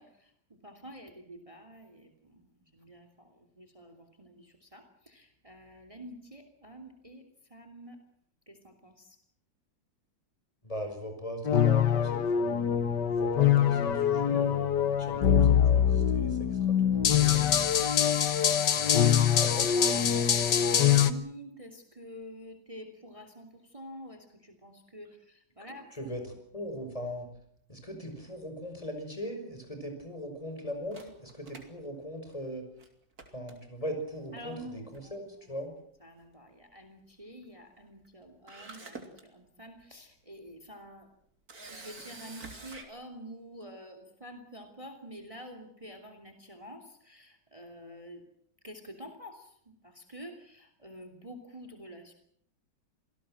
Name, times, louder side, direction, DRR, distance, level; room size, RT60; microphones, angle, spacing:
voice 1, 0.0-2.5 2.7-7.2 7.5-8.0 8.5-9.2 18.3-26.2 34.3-35.4 36.0-41.1 41.7-48.2 48.6-49.5 49.8-52.1, equal, 15° right, 7 dB, 3.0 m, -48 dB
voice 2, 10.6-16.4 16.8-17.6 18.8-19.2 19.4-20.2 26.0-26.3 26.5-27.3 27.7-32.7 33.3-35.2 35.5-35.7, equal, 20° left, 6 dB, 5.7 m, -40 dB
sound 1, 11.5-21.1, left 9 dB, 70° left, 1.9 m, -24 dB
Camera, 30.9-32.5 32.8-32.9 33.2-34.0 34.9-35.2 35.5-35.6 38.0-38.1 38.5-39.2 39.8-39.9 41.5-42.8, right 3 dB, 50° right, 3.6 m, -47 dB
27.0 x 18.0 x 7.8 m, 0.67 s
omnidirectional pair, 2.0 m